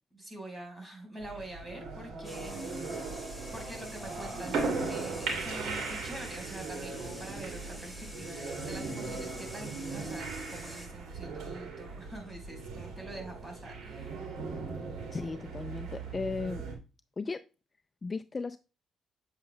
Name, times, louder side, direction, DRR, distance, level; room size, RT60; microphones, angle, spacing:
voice 1, 0.1-3.0 3.5-14.3, right 1 dB, 20° right, 4.6 m, -45 dB
sound 1, 1.2-16.8, right 4 dB, 85° right, 2.5 m, -38 dB
sound 2, 2.2-10.9, equal, 5° right, 3.4 m, -47 dB
voice 2, 15.1-16.6 17.2-17.4 18.0-18.6, left 4 dB, 30° left, 0.4 m, -35 dB
8.0 x 7.6 x 2.2 m
cardioid pair, 90°, 0 cm